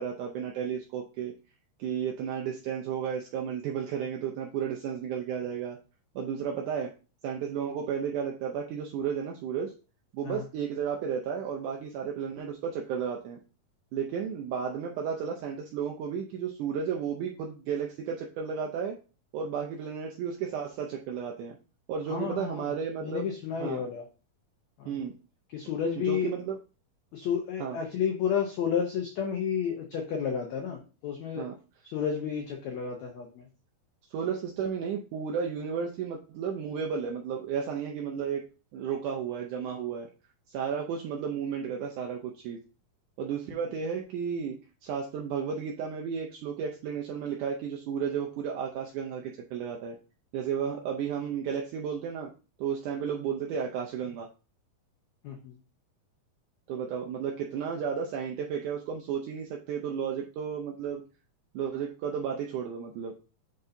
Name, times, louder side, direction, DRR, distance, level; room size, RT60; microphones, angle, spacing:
voice 1, 0.0-1.3 1.8-5.8 6.2-6.9 7.2-9.7 10.1-13.4 13.9-19.0 19.3-21.6 21.9-23.3 23.6-23.8 24.9-25.1 26.0-26.6 27.6-27.8 31.4-31.6 34.1-38.4 38.7-40.1 40.5-42.6 43.2-50.0 50.3-52.3 52.6-54.3 56.7-61.0 61.5-63.1, right 7 dB, 80° right, 1 dB, 1.8 m, -33 dB
voice 2, 22.1-22.6 23.0-24.0 24.8-24.9 25.5-26.3 27.1-31.5 31.8-33.4 55.2-55.6, left 7 dB, 80° left, 2 dB, 1.6 m, -31 dB
9.7 x 4.0 x 2.6 m, 0.34 s
omnidirectional pair, 4.3 m